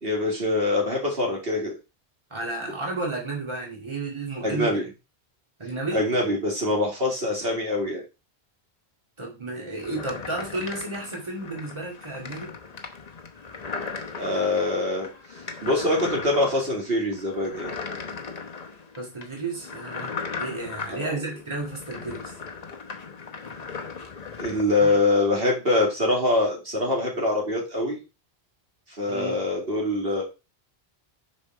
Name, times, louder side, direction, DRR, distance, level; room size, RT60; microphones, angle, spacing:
voice 1, 0.0-1.8 4.4-4.8 5.9-8.0 14.2-15.1 15.6-17.7 20.9-21.2 24.4-28.0 29.0-30.2, left 2 dB, 65° right, -1 dB, 2.6 m, -24 dB
voice 2, 2.3-4.9 5.6-6.0 9.2-12.5 19.0-22.4 24.8-25.0 25.3-25.5 29.1-29.4, right 2 dB, 25° right, -1 dB, 2.4 m, -33 dB
sound 1, 9.8-24.6, left 5 dB, 40° left, 1.0 m, -37 dB
6.8 x 5.5 x 4.5 m, 0.27 s
omnidirectional pair, 1.1 m